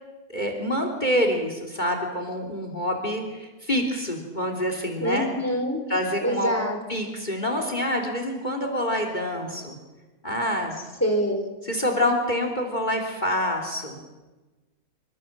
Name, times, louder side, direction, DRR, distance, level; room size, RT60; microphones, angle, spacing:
voice 1, 0.3-5.3 5.9-6.5 6.9-9.8 10.2-10.8 11.6-14.0, equal, 30° left, 4 dB, 3.4 m, -26 dB
voice 2, 5.0-5.8 6.2-6.8 11.0-11.5, equal, 10° left, 4 dB, 4.5 m, -25 dB
27.5 x 24.5 x 7.5 m, 1.2 s
omnidirectional pair, 1.5 m